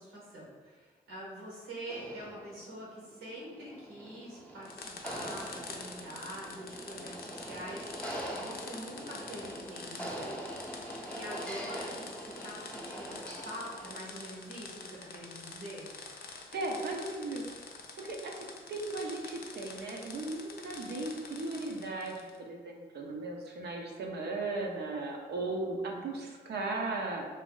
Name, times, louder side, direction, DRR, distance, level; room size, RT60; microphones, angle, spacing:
voice 1, 0.0-10.3 11.1-15.9, right 1 dB, 80° right, -5 dB, 1.1 m, -45 dB
sound 1, 1.8-14.2, equal, 5° left, 0.7 m, -43 dB
sound 2, 4.6-22.4, left 4 dB, 50° left, 0.5 m, -47 dB
voice 2, 16.5-17.4 18.0-27.3, right 2 dB, 60° right, 0 dB, 0.6 m, -37 dB
2.6 x 2.0 x 3.8 m, 1.4 s
supercardioid pair, 50°, 20 cm